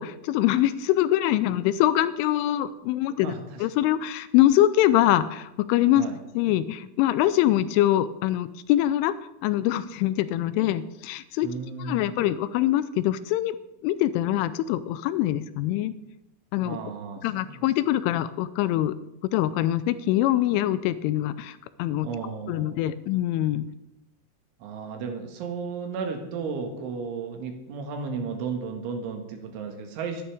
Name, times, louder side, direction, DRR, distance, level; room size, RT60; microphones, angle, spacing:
voice 1, 0.0-3.3 3.6-6.0 6.4-9.1 9.4-11.5 11.8-13.6 13.8-15.9 16.5-16.8 17.2-18.9 19.3-22.1 22.5-23.7, left 13 dB, 85° left, 14 dB, 3.0 m, -24 dB
voice 2, 3.2-3.7 5.9-6.2 11.4-12.2 16.6-17.7 22.0-22.9 24.6-30.2, right 5 dB, 75° right, 4 dB, 4.0 m, -34 dB
24.0 x 11.0 x 3.5 m, 0.91 s
omnidirectional pair, 5.7 m